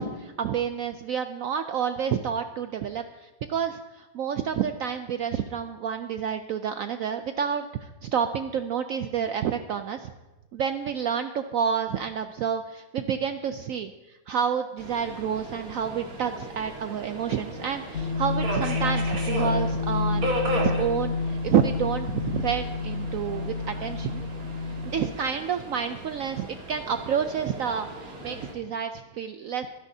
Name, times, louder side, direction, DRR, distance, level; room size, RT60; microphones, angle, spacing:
voice 1, 0.0-10.1 10.5-24.2 24.8-29.7, right 8 dB, 75° right, 8 dB, 0.7 m, -29 dB
Subway metro underground, 14.8-28.5, right 1 dB, 55° right, 2.4 m, -36 dB
sound 1, 17.9-25.1, left 4 dB, 60° left, 0.9 m, -29 dB
23.5 x 10.0 x 2.7 m, 1.1 s
omnidirectional pair, 1.9 m